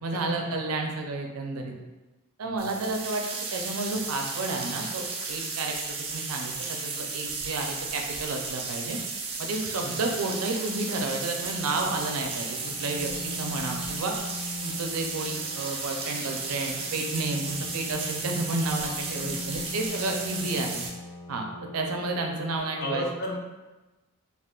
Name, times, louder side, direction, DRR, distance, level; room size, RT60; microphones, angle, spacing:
voice 1, 0.0-1.7 2.4-3.2 3.5-5.8 6.1-9.0 9.4-14.1 14.6-20.8 21.3-21.5 21.7-23.0, right 2 dB, 80° right, 2 dB, 0.5 m, -31 dB
voice 2, 2.4-2.8 9.8-10.0 12.6-12.8 19.1-19.4 20.1-20.2 22.8-23.4, left 1 dB, 50° left, 0 dB, 0.5 m, -35 dB
sound 1, 2.6-20.9, right 4 dB, 25° right, 0.3 m, -34 dB
sound 2, 11.7-22.6, left 3 dB, 90° left, 0.7 m, -41 dB
2.4 x 2.4 x 3.6 m, 1.1 s
head